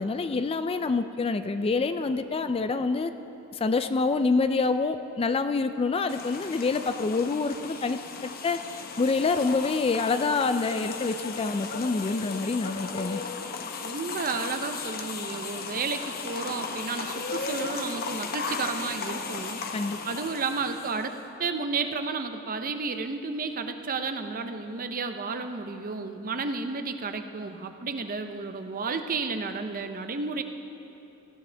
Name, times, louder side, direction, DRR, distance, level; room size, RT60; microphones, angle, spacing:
voice 1, 0.0-3.1 3.5-8.6 9.0-13.2 19.7-20.0, left 4 dB, 25° left, 10 dB, 0.3 m, -26 dB
sound 1, 6.1-21.2, left 4 dB, 45° left, 0.9 m, -36 dB
voice 2, 13.8-19.6 20.1-21.1 21.4-30.4, right 4 dB, 40° right, 7 dB, 0.7 m, -32 dB
19.0 x 15.0 x 3.4 m, 3.0 s
head